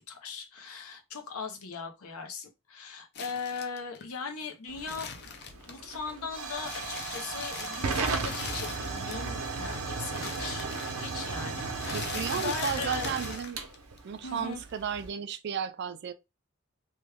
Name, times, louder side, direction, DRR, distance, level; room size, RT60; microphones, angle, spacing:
voice 1, 0.0-10.7 11.0-13.1 14.2-14.6, left 5 dB, 85° left, 0.8 m, -39 dB
sound 1, 3.2-6.1 6.5-9.4 9.6-14.0 14.3-15.2, left 6 dB, 50° left, 0.5 m, -42 dB
Hiss / Fire / Tick, 4.7-15.1, right 4 dB, 85° right, 0.7 m, -35 dB
voice 2, 11.9-13.6 14.0-16.1, right 7 dB, 50° right, 0.3 m, -34 dB
3.1 x 2.3 x 3.3 m
head